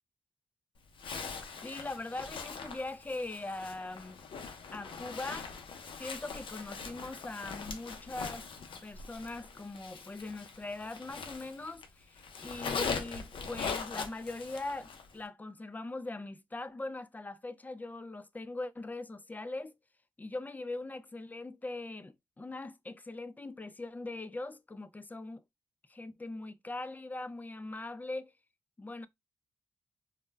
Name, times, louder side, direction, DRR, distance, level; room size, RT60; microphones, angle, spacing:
Zipper (clothing), 1.0-11.9 12.2-15.1, left 5 dB, 70° left, 0.5 m, -41 dB
voice 1, 1.6-4.2 4.7-5.5 6.0-8.4 8.8-19.7 20.2-25.4 25.9-28.3 28.8-29.1, left 2 dB, 20° left, 0.4 m, -41 dB
2.1 x 2.1 x 3.2 m
supercardioid pair, 45°, 9 cm